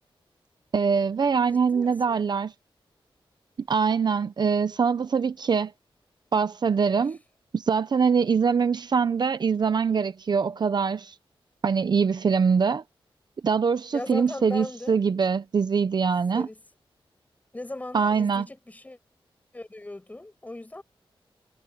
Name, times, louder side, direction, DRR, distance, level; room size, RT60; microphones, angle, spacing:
voice 1, 0.7-2.5 3.7-5.7 6.3-7.2 7.5-11.1 11.6-12.8 13.4-16.5 17.9-18.4, right 6 dB, 50° right, 0.7 m, -23 dB
voice 2, 1.5-2.2 7.0-7.1 13.9-15.0 16.3-16.6 17.5-19.0 19.5-20.8, left 2 dB, 15° left, 5.9 m, -38 dB
wide cardioid pair, 140°, 9 cm